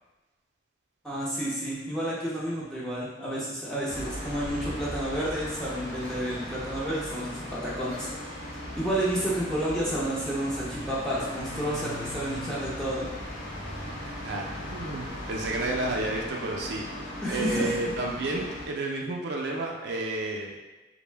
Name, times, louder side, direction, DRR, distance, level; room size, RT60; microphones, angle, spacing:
voice 1, 1.0-8.1 8.4-13.1 17.2-17.7, right 1 dB, 5° left, -7 dB, 0.5 m, -30 dB
sound 1, 3.9-18.7, left 1 dB, 80° left, 0.8 m, -38 dB
voice 2, 13.9-16.8 17.3-20.5, right 2 dB, 65° right, -1 dB, 0.4 m, -31 dB
2.6 x 2.1 x 3.2 m, 1.1 s
head